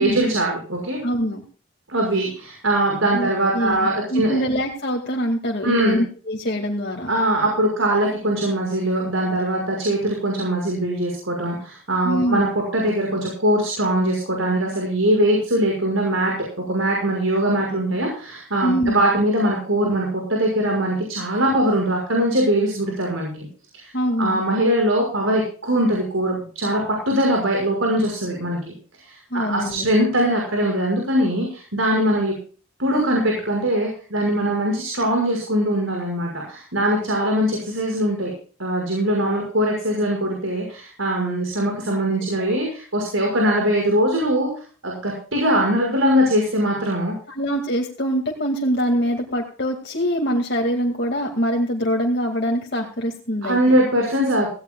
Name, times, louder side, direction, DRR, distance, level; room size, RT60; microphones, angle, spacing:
voice 1, 0.0-1.0 1.9-4.4 5.6-6.0 7.1-12.5 12.7-16.3 16.7-23.5 23.7-23.9 24.2-26.8 27.1-28.7 29.0-32.3 32.8-38.3 38.6-44.5 44.8-47.1 53.4-54.5, right 1 dB, 85° right, 0 dB, 5.8 m, -21 dB
voice 2, 1.0-1.4 3.1-7.1 12.0-12.4 18.6-19.0 23.9-24.4 29.3-29.9 47.3-53.8, equal, 55° left, 0 dB, 2.2 m, -24 dB
18.0 x 17.0 x 2.4 m, 0.39 s
head